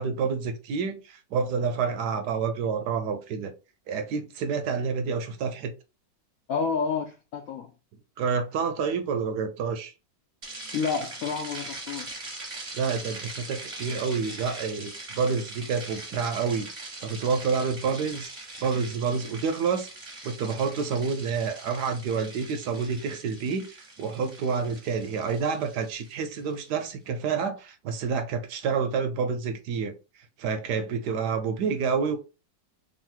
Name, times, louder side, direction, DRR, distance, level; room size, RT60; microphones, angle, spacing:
voice 1, 0.0-3.5 3.9-5.7 8.2-9.9 12.7-16.7 17.0-19.9 20.2-29.9 30.4-32.2, right 5 dB, 75° right, 1.1 m, -28 dB
voice 2, 6.5-7.7 10.7-12.1, left 5 dB, 75° left, 0.8 m, -29 dB
sound 1, 10.4-26.7, right 2 dB, 25° right, 0.7 m, -41 dB
3.1 x 2.7 x 4.3 m
omnidirectional pair, 2.0 m